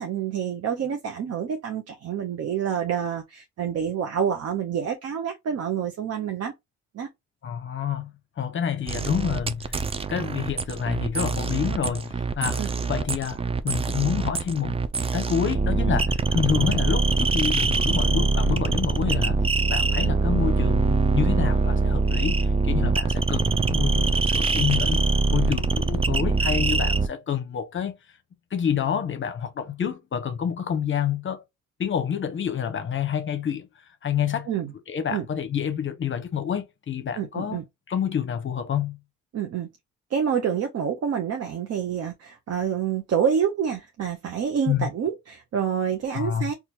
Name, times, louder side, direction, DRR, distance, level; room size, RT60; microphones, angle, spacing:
voice 1, 0.0-6.5 6.9-7.1 12.6-12.7 34.5-34.7 35.1-35.3 37.2-37.6 39.3-39.7 40.1-46.5, right 8 dB, 55° right, 0.7 m, -27 dB
voice 2, 7.4-8.1 8.4-9.8 10.1-14.8 15.1-19.4 19.7-28.0 28.5-31.4 31.8-34.5 34.9-37.6 37.9-39.0 44.7-44.9 46.1-46.5, left 8 dB, 40° left, 0.7 m, -28 dB
sound 1, 8.9-27.1, right 4 dB, 20° right, 0.4 m, -23 dB
4.3 x 2.4 x 2.7 m
cardioid pair, 90°, 30 cm